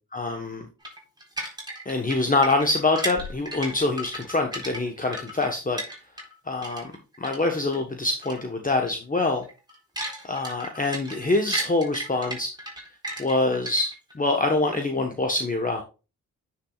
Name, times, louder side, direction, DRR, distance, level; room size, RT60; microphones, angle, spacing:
voice 1, 0.1-0.7 1.8-5.8 6.5-6.9 7.2-9.4 10.2-12.5 13.2-15.8, left 2 dB, 25° left, 4 dB, 1.2 m, -25 dB
sound 1, 0.8-6.4 6.6-7.8 8.2-8.4 8.7-8.9 9.3-14.1, right 1 dB, 10° right, 4.2 m, -35 dB
9.8 x 6.0 x 2.4 m, 0.31 s
cardioid pair, 70°, 35 cm